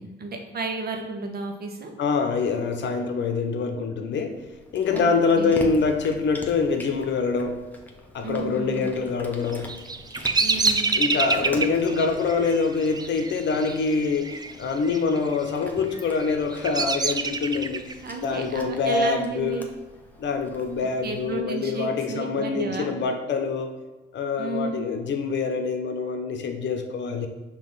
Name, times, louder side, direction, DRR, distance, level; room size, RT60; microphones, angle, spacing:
voice 1, 0.0-1.9 4.9-5.1 5.4-5.5 8.2-8.9 10.4-10.9 18.0-19.6 21.0-22.9 24.4-24.9, right 3 dB, 50° right, 3 dB, 1.1 m, -32 dB
voice 2, 2.0-4.4 4.7-7.6 8.1-9.7 10.9-19.7 20.2-23.7 24.1-27.3, left 4 dB, 65° left, 5 dB, 0.9 m, -25 dB
Cat, 4.3-21.4, left 1 dB, 10° left, 1.0 m, -43 dB
Bird vocalization bird call bird song, 9.5-14.5 14.8-15.4 15.9-17.9, right 4 dB, 20° right, 0.4 m, -26 dB
5.7 x 3.0 x 5.5 m, 1.2 s
cardioid pair, 90°, 20 cm